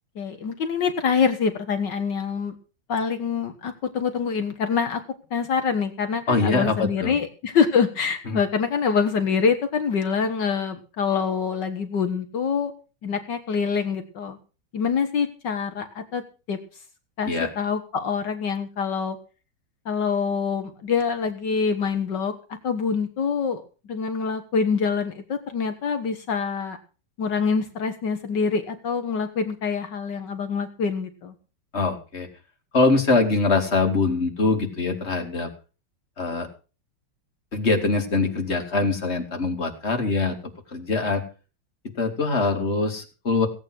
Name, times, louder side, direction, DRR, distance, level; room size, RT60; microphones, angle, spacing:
voice 1, 0.2-2.6 2.9-5.0 5.3-12.7 13.0-14.4 14.7-16.2 16.5-16.6 17.2-19.2 19.9-22.3 22.6-23.6 23.9-26.8 27.2-31.3, left 6 dB, 65° left, 7 dB, 1.9 m, -25 dB
voice 2, 6.3-7.1 8.3-8.4 17.3-17.5 31.7-32.3 32.7-35.5 36.2-36.5 37.5-40.4 40.7-41.2 42.0-43.5, left 3 dB, 35° left, 4 dB, 2.6 m, -23 dB
17.0 x 9.0 x 6.2 m, 0.35 s
omnidirectional pair, 2.1 m